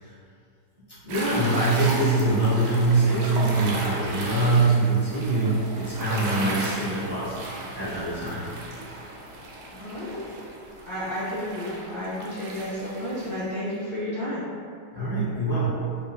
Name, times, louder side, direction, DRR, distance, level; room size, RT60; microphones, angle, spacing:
voice 1, 1.0-8.5 14.9-16.0, right 2 dB, 55° right, -13 dB, 0.6 m, -24 dB
sound 1, 1.1-13.3, right 2 dB, 85° right, 1.4 m, -36 dB
voice 2, 9.7-10.2 10.9-14.4, left 1 dB, 20° left, -13 dB, 0.8 m, -31 dB
4.2 x 2.2 x 2.2 m, 2.3 s
omnidirectional pair, 2.2 m